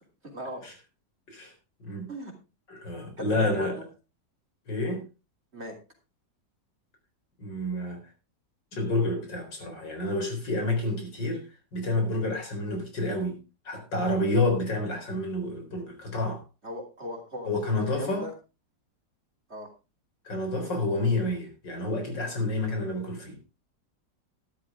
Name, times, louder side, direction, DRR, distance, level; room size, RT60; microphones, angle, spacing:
voice 1, 0.2-0.7 2.1-2.3 3.2-3.9 5.5-5.8 16.6-18.3 19.5-19.7, equal, 35° right, 1 dB, 3.5 m, -38 dB
voice 2, 2.7-3.8 4.7-5.0 7.4-8.0 8.7-11.4 11.7-13.4 13.6-16.4 17.5-18.3 20.2-23.4, left 2 dB, 80° left, 4 dB, 4.7 m, -29 dB
12.5 x 12.0 x 3.7 m, 0.29 s
omnidirectional pair, 1.9 m